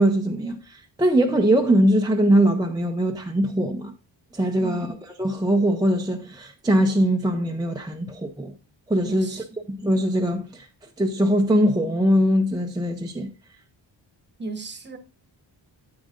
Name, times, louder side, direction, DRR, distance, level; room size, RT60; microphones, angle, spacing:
voice 1, 0.0-3.9 4.3-4.9 5.2-8.5 8.9-10.7 11.0-13.3, right 1 dB, 10° right, 0.6 m, -21 dB
voice 2, 4.6-5.0 9.0-9.5 14.4-15.0, right 3 dB, 25° right, 1.1 m, -35 dB
9.9 x 8.6 x 2.5 m
wide cardioid pair, 165°, 44 cm